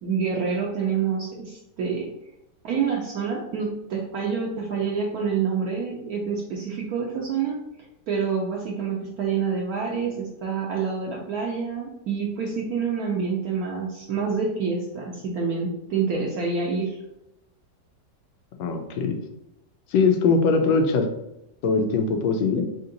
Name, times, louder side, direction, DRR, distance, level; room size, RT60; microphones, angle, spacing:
voice 1, 0.0-2.1 2.6-7.6 8.1-17.0, right 5 dB, 65° right, -2 dB, 1.0 m, -27 dB
voice 2, 18.6-19.2 19.9-21.1 21.6-22.7, left 4 dB, 90° left, 4 dB, 1.3 m, -21 dB
3.6 x 2.8 x 3.8 m, 0.86 s
omnidirectional pair, 1.9 m